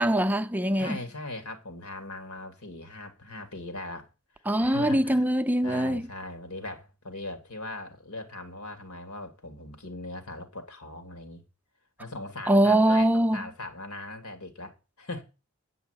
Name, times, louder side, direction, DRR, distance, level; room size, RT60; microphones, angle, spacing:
voice 1, 0.0-1.0 4.5-6.1 12.5-13.4, right 1 dB, 10° right, 0.5 m, -23 dB
voice 2, 0.8-4.1 4.6-5.3 5.6-11.4 12.0-15.2, left 2 dB, 85° left, 2.2 m, -39 dB
8.9 x 5.5 x 8.1 m
head